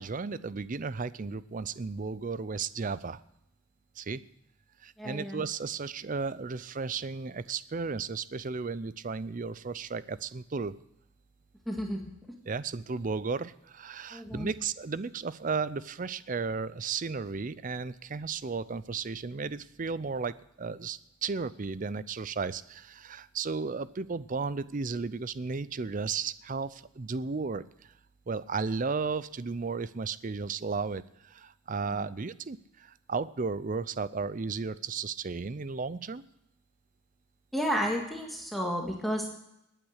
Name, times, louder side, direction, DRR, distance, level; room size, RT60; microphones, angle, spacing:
voice 1, 0.0-3.2 4.0-4.2 4.8-10.8 12.5-27.6 28.3-36.2, right 4 dB, 40° right, 17 dB, 0.5 m, -34 dB
voice 2, 5.0-5.4 11.7-12.0 14.1-14.5 37.5-39.3, equal, ahead, 0 dB, 1.8 m, -32 dB
20.0 x 9.2 x 6.4 m, 0.83 s
head